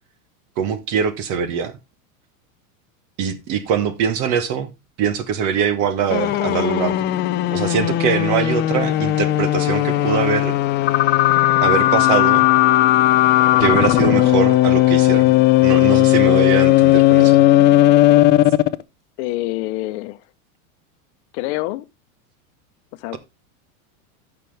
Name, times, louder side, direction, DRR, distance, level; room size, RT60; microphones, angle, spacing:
voice 1, 0.6-1.7 3.2-4.7 5.0-7.0 7.5-10.5 11.6-12.4 13.6-15.3 15.6-17.4, right 7 dB, 45° right, 1.4 m, -22 dB
sound 1, 6.1-18.8, left 15 dB, 25° left, 0.4 m, -16 dB
voice 2, 19.2-20.3 21.3-21.9 23.0-23.2, left 18 dB, 55° left, 0.9 m, -26 dB
13.0 x 6.0 x 3.3 m
supercardioid pair, 140°, 42 cm